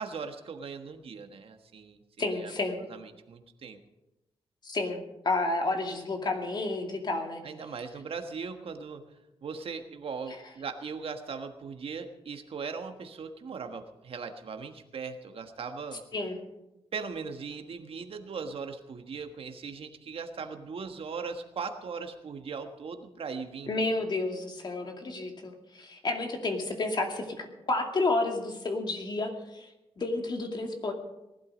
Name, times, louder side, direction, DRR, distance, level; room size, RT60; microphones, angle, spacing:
voice 1, 0.0-2.0 2.4-2.5 2.9-3.8 7.4-9.0 9.4-16.0 16.9-23.7, right 5 dB, 65° right, 6 dB, 1.4 m, -39 dB
voice 2, 2.2-2.8 4.6-7.4 16.1-16.4 23.7-29.7 30.0-30.9, left 2 dB, 45° left, 3 dB, 2.4 m, -31 dB
19.0 x 12.0 x 5.1 m, 0.95 s
wide cardioid pair, 125°, 10 cm